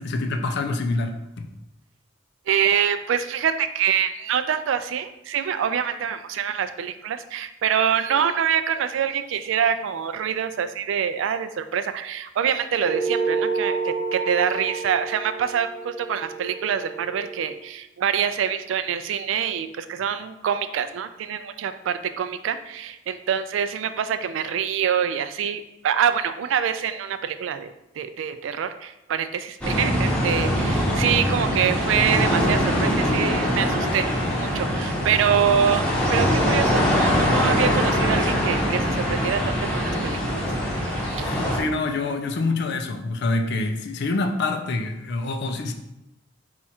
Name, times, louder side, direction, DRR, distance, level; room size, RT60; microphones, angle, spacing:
voice 1, 0.0-1.5 41.2-45.7, left 3 dB, 60° left, 5 dB, 0.5 m, -26 dB
voice 2, 2.5-34.1 34.4-40.4 40.8-41.3, right 8 dB, 75° right, 10 dB, 0.3 m, -25 dB
sound 1, 12.8-17.6, right 5 dB, 30° left, 0.8 m, -29 dB
sound 2, 29.6-41.6, equal, 5° left, 0.8 m, -23 dB
4.3 x 2.4 x 4.2 m, 0.90 s
head